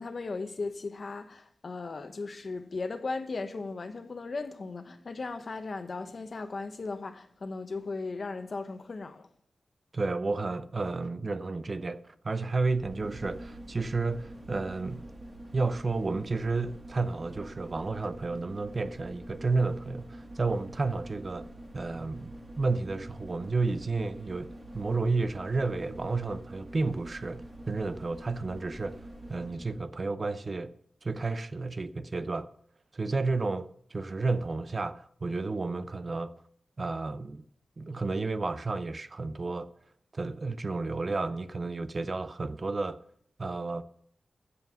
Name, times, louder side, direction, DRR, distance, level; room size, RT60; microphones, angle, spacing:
voice 1, 0.0-9.3, left 3 dB, 50° left, 1.1 m, -37 dB
voice 2, 9.9-15.1 15.5-21.5 21.7-29.0 29.3-30.7 31.0-32.5 32.9-36.3 36.8-37.4 37.8-39.7 40.1-43.0 43.4-43.8, right 3 dB, 40° right, 0.6 m, -31 dB
sound 1, 12.6-29.9 30.2-30.3, right 1 dB, 25° right, 1.9 m, -46 dB
15.0 x 5.7 x 6.9 m
wide cardioid pair, 105°, 0 cm